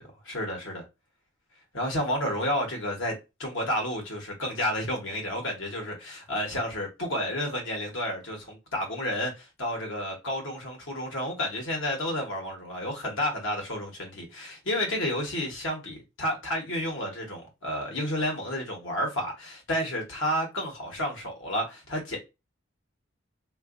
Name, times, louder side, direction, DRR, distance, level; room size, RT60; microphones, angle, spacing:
voice 1, 0.2-0.8 1.7-3.1 3.4-22.2, equal, 70° left, 1.1 m, -31 dB
3.5 x 2.5 x 2.5 m
head